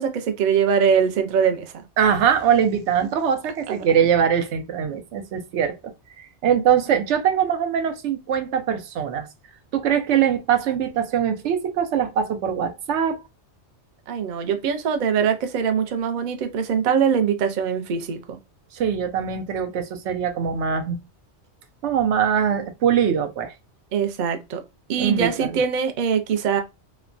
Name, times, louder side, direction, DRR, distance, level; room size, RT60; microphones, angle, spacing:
voice 1, 0.0-1.9 3.7-3.8 14.1-18.4 23.9-24.6 24.9-26.6, right 7 dB, 55° right, 0.5 m, -22 dB
voice 2, 2.0-5.8 6.4-9.3 9.7-13.2 18.7-21.0 21.8-23.5 25.0-25.5, right 8 dB, 85° right, 0.9 m, -22 dB
3.0 x 2.2 x 2.4 m
omnidirectional pair, 1.2 m